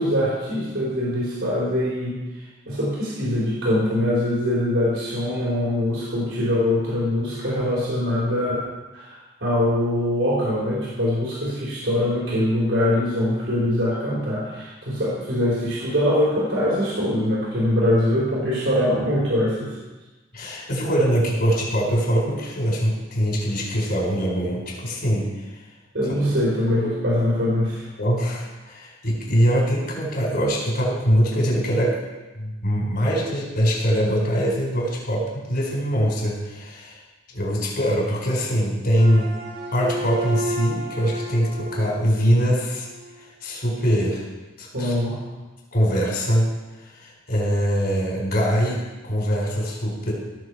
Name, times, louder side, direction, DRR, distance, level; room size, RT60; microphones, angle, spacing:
voice 1, 0.0-2.2 2.7-8.6 8.9-19.8 25.9-27.9 44.7-45.2, left 1 dB, 75° right, -7 dB, 4.0 m, -23 dB
voice 2, 20.3-25.5 26.2-26.4 26.8-26.9 28.0-32.0 32.4-37.0 37.3-39.3 39.7-42.9 43.2-44.2 44.6-44.9 45.7-46.5 46.8-50.1, equal, 55° left, -3 dB, 4.4 m, -23 dB
sound 1, 38.9-43.2, right 1 dB, 60° right, 2.2 m, -32 dB
17.0 x 7.0 x 4.8 m, 1.2 s
head